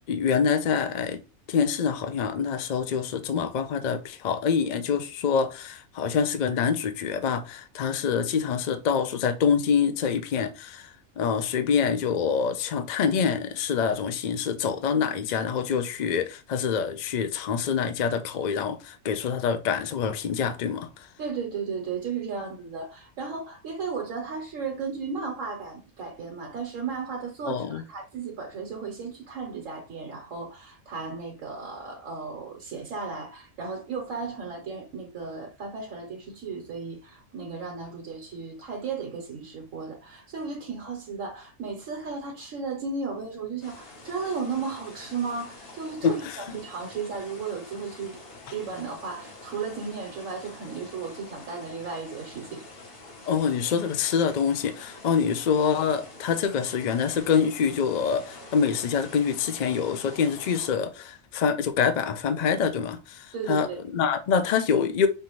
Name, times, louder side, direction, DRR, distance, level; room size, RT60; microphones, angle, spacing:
voice 1, 0.1-1.2 1.5-21.1 27.5-27.8 46.0-46.4 53.3-63.7 63.9-65.1, left 6 dB, 65° left, 0.4 m, -26 dB
voice 2, 21.2-48.2 48.5-52.6 63.3-63.8, right 5 dB, 85° right, 1.3 m, -35 dB
sound 1, 43.6-60.7, left 2 dB, 50° left, 1.2 m, -46 dB
5.5 x 2.5 x 3.0 m
omnidirectional pair, 1.3 m